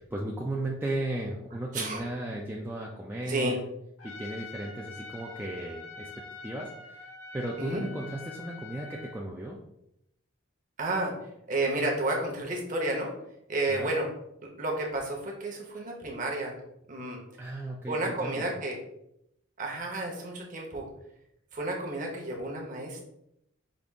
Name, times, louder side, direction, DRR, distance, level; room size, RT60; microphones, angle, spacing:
voice 1, 0.0-3.6 4.0-9.6 13.7-13.9 17.4-18.5, right 1 dB, 10° right, -2 dB, 0.3 m, -35 dB
Trumpet, 4.0-9.2, left 4 dB, 80° left, 1.4 m, -45 dB
voice 2, 10.8-11.1 11.5-13.1 13.5-14.1 14.4-16.6 16.9-17.2 17.9-18.8 19.6-20.9 21.5-23.0, right 2 dB, 40° right, 0 dB, 0.9 m, -31 dB
5.2 x 2.4 x 3.5 m, 0.80 s
head